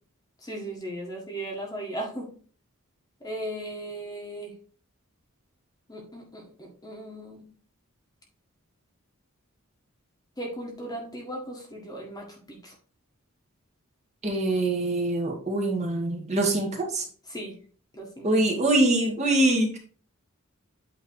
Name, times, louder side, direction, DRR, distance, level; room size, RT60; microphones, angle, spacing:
voice 1, 0.4-2.3 3.2-4.5 5.9-7.4 10.4-12.7 17.3-17.5 17.9-18.3, right 1 dB, 15° left, 0 dB, 1.6 m, -37 dB
voice 2, 14.2-17.0 18.2-19.8, right 2 dB, 30° right, -1 dB, 1.8 m, -24 dB
8.6 x 3.4 x 4.7 m, 0.43 s
head